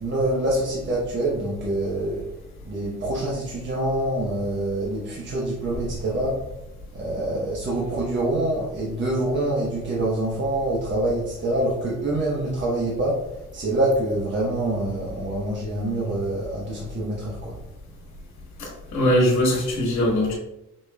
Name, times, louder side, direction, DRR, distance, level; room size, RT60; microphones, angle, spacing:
voice 1, 0.0-2.2 2.7-6.4 6.9-13.3 13.5-17.6, right 1 dB, 40° right, -5 dB, 0.8 m, -25 dB
voice 2, 18.6-20.3, equal, 65° left, -3 dB, 1.5 m, -21 dB
5.1 x 2.4 x 2.2 m, 0.87 s
cardioid pair, 90°, 30 cm